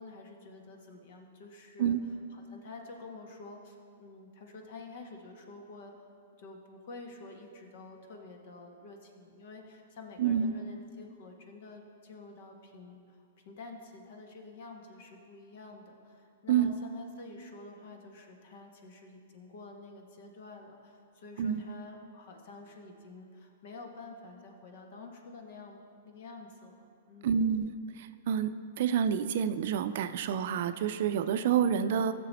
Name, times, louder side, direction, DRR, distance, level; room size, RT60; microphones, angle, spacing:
voice 1, 0.0-2.0 2.3-6.1 6.4-13.2 13.4-27.5, left 3 dB, 60° left, 3 dB, 1.6 m, -49 dB
voice 2, 10.2-10.5 16.5-16.7 21.4-21.6 27.2-32.1, right 8 dB, 60° right, 11 dB, 0.5 m, -28 dB
15.0 x 6.9 x 4.2 m, 2.4 s
hypercardioid pair, 115°, 0 cm